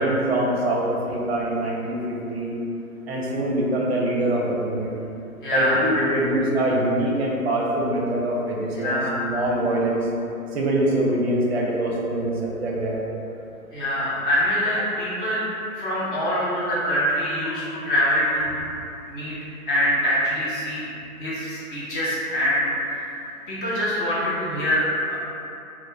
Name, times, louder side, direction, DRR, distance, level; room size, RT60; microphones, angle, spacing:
voice 1, 0.0-2.6 3.1-4.9 5.5-10.1 10.5-13.0, right 1 dB, 45° right, -3 dB, 0.5 m, -24 dB
voice 2, 5.4-6.1 8.7-9.2 13.7-15.4 15.8-18.5 19.1-19.3 19.7-20.9 21.2-23.2 23.5-25.2, equal, 35° left, -9 dB, 0.9 m, -24 dB
2.3 x 2.0 x 3.8 m, 2.8 s
figure-of-eight pair, 130°, 44 cm